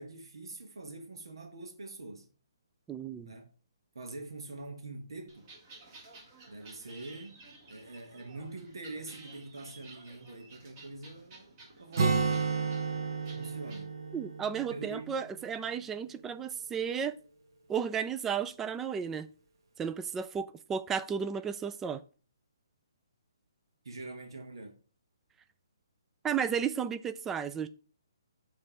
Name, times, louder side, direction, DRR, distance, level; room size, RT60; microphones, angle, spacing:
voice 1, 0.0-2.3 3.2-3.4 3.9-5.5 6.5-12.5 13.3-13.9 14.7-15.0 23.8-24.8, right 2 dB, 85° right, 1.4 m, -44 dB
voice 2, 2.9-3.3 14.1-17.1 17.7-19.3 19.8-22.0 26.2-27.7, right 7 dB, 10° right, 0.3 m, -33 dB
sound 1, 5.3-13.8, right 3 dB, 30° right, 1.7 m, -54 dB
Acoustic guitar, 12.0-15.7, right 4 dB, 60° right, 1.1 m, -32 dB
6.9 x 3.2 x 5.5 m
hypercardioid pair, 155°, 2 cm